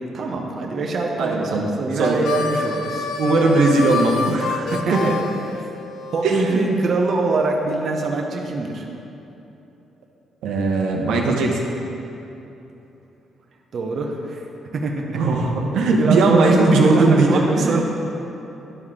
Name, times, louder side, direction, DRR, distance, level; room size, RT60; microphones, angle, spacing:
voice 1, 0.0-3.1 4.7-5.1 6.1-8.8 13.7-14.5 14.7-15.2 16.0-17.8, right 3 dB, 50° right, 0 dB, 0.8 m, -23 dB
voice 2, 1.2-1.7 1.9-2.2 3.2-5.1 6.2-6.7 10.4-11.7 15.1-17.8, right 3 dB, 85° right, -1 dB, 0.9 m, -19 dB
Harmonica, 2.0-6.3, left 4 dB, 75° left, 0.5 m, -27 dB
11.0 x 4.7 x 3.7 m, 3.0 s
cardioid pair, 90°, 0 cm